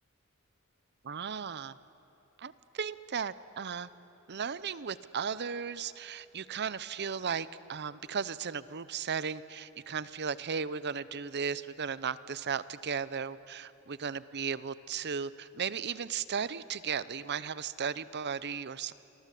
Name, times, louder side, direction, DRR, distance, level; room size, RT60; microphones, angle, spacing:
voice 1, 1.0-1.8 2.4-3.9 4.3-18.9, right 6 dB, 50° right, 16 dB, 0.7 m, -36 dB
28.5 x 24.0 x 8.5 m, 2.9 s
head